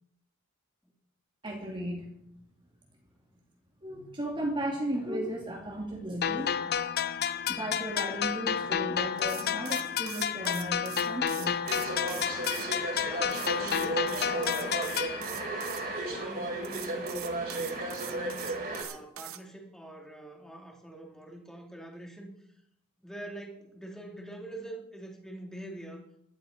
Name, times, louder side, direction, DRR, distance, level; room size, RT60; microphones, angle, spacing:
voice 1, 1.4-2.1 3.8-6.6 7.5-11.5, right 1 dB, 20° right, 0 dB, 2.5 m, -35 dB
sound 1, 6.2-15.2, left 8 dB, 45° left, 0.6 m, -31 dB
sound 2, 9.2-12.7 13.3-15.8 16.6-19.4, right 11 dB, 65° right, 1.1 m, -43 dB
sound 3, 11.6-18.8, right 2 dB, 45° right, 4.3 m, -34 dB
voice 2, 13.0-15.6 16.1-18.4 18.8-22.3 23.0-26.0, right 1 dB, 5° left, 0 dB, 2.8 m, -45 dB
16.0 x 12.0 x 5.1 m, 0.76 s
head